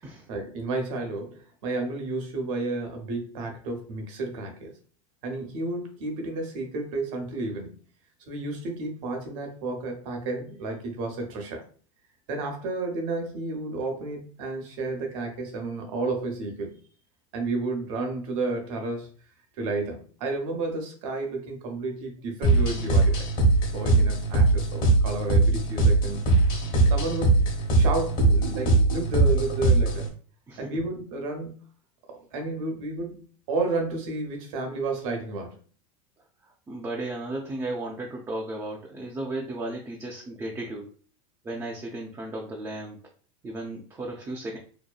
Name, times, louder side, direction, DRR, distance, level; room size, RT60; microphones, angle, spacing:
voice 1, 0.0-4.7 5.2-7.7 8.3-11.6 12.3-16.8 17.3-19.1 19.6-23.2 23.7-26.2 26.9-27.5 27.7-30.1 30.6-31.5 32.1-33.2 33.5-35.6, right 3 dB, 65° right, 3 dB, 0.8 m, -31 dB
sound 1, 22.4-30.1, right 2 dB, 50° left, 1.1 m, -21 dB
voice 2, 30.5-30.8 36.7-40.9 41.4-43.0 43.4-44.6, right 2 dB, 15° right, -1 dB, 0.4 m, -34 dB
2.8 x 2.2 x 2.3 m, 0.42 s
hypercardioid pair, 100°, 18 cm